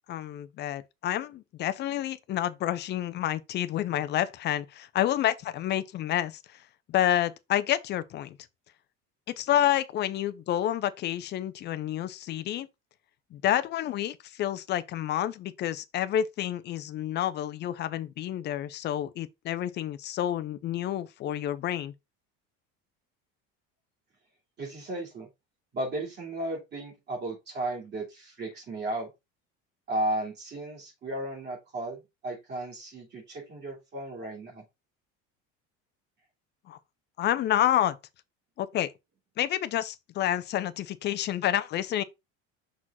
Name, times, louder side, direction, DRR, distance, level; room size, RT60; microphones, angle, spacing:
voice 1, 0.1-6.6 6.9-8.4 9.3-12.7 13.3-21.9 36.7-36.8 37.2-38.0 38.6-38.9 39.4-42.0, left 11 dB, 35° left, 0.6 m, -29 dB
voice 2, 24.6-25.3 25.7-29.1 29.9-34.6, right 1 dB, 35° right, 3.4 m, -34 dB
6.2 x 4.2 x 4.1 m
cardioid pair, 165°, 30 cm